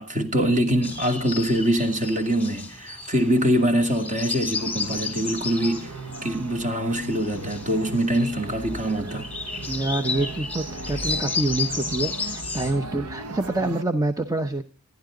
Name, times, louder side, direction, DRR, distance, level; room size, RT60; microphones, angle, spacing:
voice 1, 0.0-5.9 6.2-9.3, equal, 35° right, 2.5 m, -24 dB
sound 1, 0.8-12.7, left 4 dB, 5° left, 2.7 m, -33 dB
sound 2, 4.5-13.8, right 2 dB, 85° right, 1.1 m, -37 dB
voice 2, 9.7-14.6, right 2 dB, 15° right, 0.8 m, -26 dB
27.0 x 10.5 x 3.8 m
head